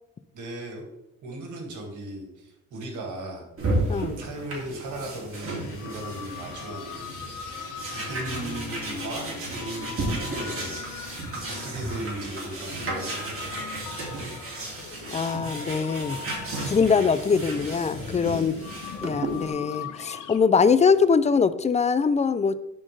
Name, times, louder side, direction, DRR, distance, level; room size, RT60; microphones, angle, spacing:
voice 1, 0.3-0.8 1.2-3.4 4.2-13.6 18.2-18.5, right 1 dB, 80° right, 1 dB, 2.1 m, -37 dB
sound 1, 3.6-19.5, right 2 dB, 45° right, 2.5 m, -33 dB
sound 2, 5.6-20.4, left 9 dB, 85° left, 0.7 m, -40 dB
voice 2, 15.1-16.2 16.6-18.5 19.0-22.6, left 5 dB, 25° left, 14 dB, 0.4 m, -22 dB
11.0 x 4.3 x 3.3 m, 0.90 s
cardioid pair, 90°, 30 cm